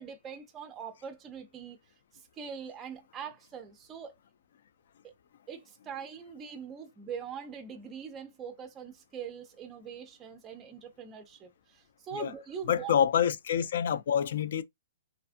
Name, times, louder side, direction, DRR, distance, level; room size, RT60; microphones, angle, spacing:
voice 1, 0.0-1.8 2.4-4.1 5.0-5.1 5.5-12.9, right 7 dB, 15° right, 0.4 m, -42 dB
voice 2, 12.7-14.6, left 9 dB, 55° left, 0.3 m, -27 dB
2.5 x 2.4 x 2.4 m
hypercardioid pair, 165°, 0 cm